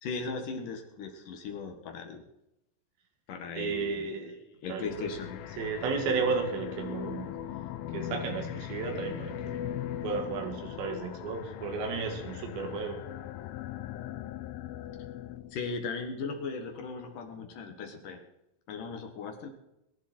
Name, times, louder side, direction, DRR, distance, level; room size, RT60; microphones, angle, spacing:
voice 1, 0.0-2.2 3.3-4.1 4.6-5.4 15.5-18.2 18.7-19.5, left 4 dB, 60° left, 4 dB, 2.7 m, -37 dB
voice 2, 3.6-4.4 4.7-5.3 5.6-7.4 7.9-13.0, right 4 dB, 90° right, 3 dB, 4.1 m, -33 dB
sound 1, 4.8-15.6, left 11 dB, 80° left, 2.2 m, -39 dB
22.0 x 11.0 x 4.3 m, 0.88 s
omnidirectional pair, 4.9 m